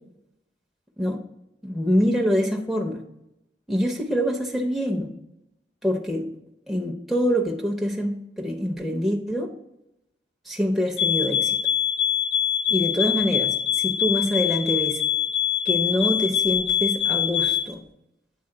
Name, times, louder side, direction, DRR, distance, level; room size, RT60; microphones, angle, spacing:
voice 1, 1.6-3.0 3.7-5.1 5.8-6.3 6.7-9.5 10.5-11.6 12.7-15.0 15.6-17.8, equal, ahead, 0 dB, 0.5 m, -25 dB
sound 1, 11.0-17.7, left 9 dB, 70° left, 0.5 m, -24 dB
8.7 x 3.9 x 3.8 m, 0.86 s
head